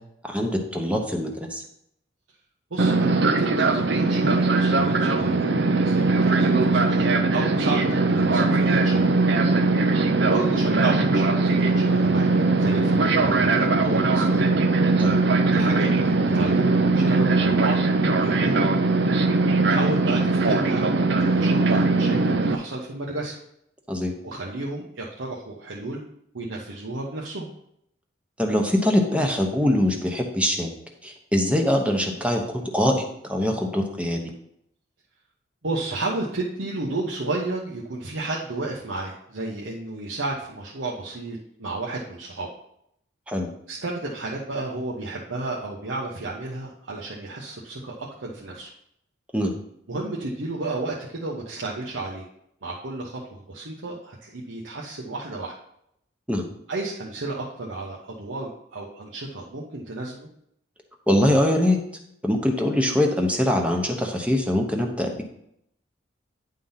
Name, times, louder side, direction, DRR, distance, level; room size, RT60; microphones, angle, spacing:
voice 1, 0.3-1.6 15.0-15.2 23.9-24.1 28.4-30.7 31.0-34.2 43.3-43.5 49.3-49.5 56.3-56.4 61.1-61.8 62.2-65.2, left 1 dB, 5° right, 2 dB, 0.9 m, -23 dB
voice 2, 2.7-5.4 5.8-9.0 10.3-14.4 15.5-17.8 18.2-18.6 19.7-23.4 24.2-26.0 26.3-27.5 35.6-42.5 43.7-48.7 49.9-52.3 52.6-55.5 56.7-60.3, right 2 dB, 80° right, -3 dB, 1.1 m, -32 dB
Fixed-wing aircraft airplane, 2.8-22.6, right 3 dB, 60° right, 0.7 m, -20 dB
10.0 x 3.8 x 5.7 m, 0.75 s
head